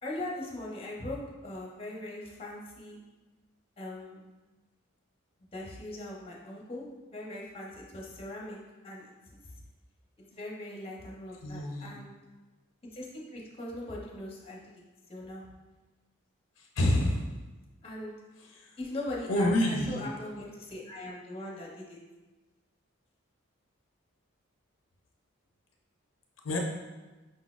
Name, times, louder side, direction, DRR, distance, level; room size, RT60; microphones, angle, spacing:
voice 1, 0.0-3.0 3.8-4.2 5.5-6.9 7.1-8.6 8.8-9.1 10.3-12.1 12.9-14.6 15.1-15.5 17.8-18.1 18.8-22.0, left 1 dB, 30° left, -3 dB, 0.8 m, -40 dB
voice 2, 11.4-11.9 16.6-17.3 18.5-18.7 19.3-20.0 26.4-26.6, left 1 dB, 70° left, 0 dB, 0.6 m, -28 dB
5.1 x 4.0 x 2.4 m, 1.2 s
head